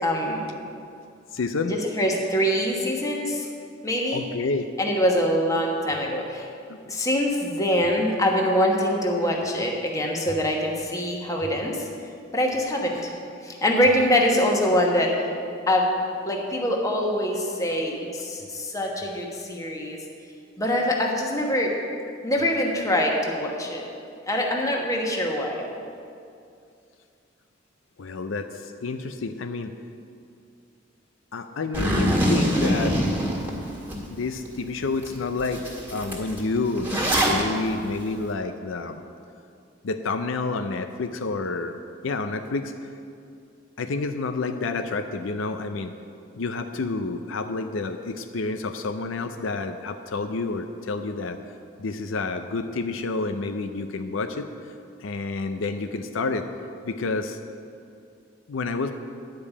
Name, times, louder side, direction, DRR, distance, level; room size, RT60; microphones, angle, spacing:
voice 1, 0.0-0.5 1.7-3.5 3.8-4.2 4.8-6.5 6.9-11.9 12.3-13.1 13.4-15.1 15.7-15.9 16.3-20.0 20.6-21.7 22.2-23.8 24.3-25.7, equal, 15° left, 0 dB, 1.2 m, -24 dB
voice 2, 1.3-1.7 4.1-4.7 6.7-6.8 28.0-29.7 31.3-33.0 34.1-35.6 35.9-39.0 39.8-41.8 42.0-42.9 43.8-45.9 46.3-51.4 51.8-54.5 55.0-56.5 56.8-57.4 58.5-58.9, left 3 dB, 75° left, 7 dB, 0.5 m, -29 dB
Zipper (clothing), 31.7-34.0 34.4-34.5 35.0-35.1 35.4-37.4, equal, 10° right, 1.7 m, -23 dB
10.5 x 5.3 x 8.3 m, 2.5 s
head